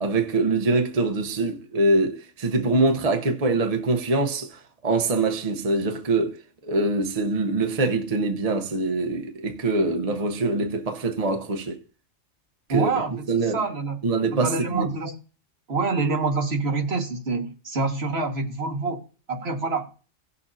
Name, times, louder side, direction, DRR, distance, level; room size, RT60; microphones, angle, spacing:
voice 1, 0.0-11.8 12.7-12.9 13.3-13.6 14.0-15.0, right 2 dB, 35° right, 0.9 m, -24 dB
voice 2, 12.7-13.3 13.5-14.0 14.3-15.2 15.7-19.0 19.3-19.9, right 3 dB, 55° right, 1.8 m, -26 dB
17.5 x 6.7 x 2.6 m
omnidirectional pair, 1.3 m